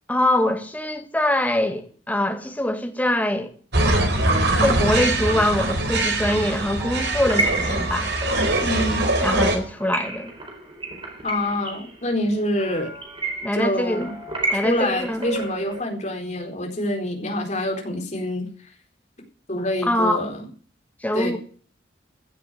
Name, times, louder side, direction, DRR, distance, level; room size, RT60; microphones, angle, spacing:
voice 1, 0.1-3.5 4.6-8.1 9.2-10.3 13.4-14.1 14.5-15.2 19.9-20.3 21.0-21.4, left 1 dB, 10° left, 2.1 m, -23 dB
sound 1, 3.7-9.6, right 2 dB, 65° right, 4.0 m, -22 dB
sound 2, 6.1-15.8, right 2 dB, 30° right, 4.5 m, -32 dB
voice 2, 8.6-9.1 11.2-12.9 13.5-14.2 14.5-18.7 19.5-20.5 21.1-21.4, left 1 dB, 40° left, 4.2 m, -26 dB
16.0 x 7.6 x 7.6 m
head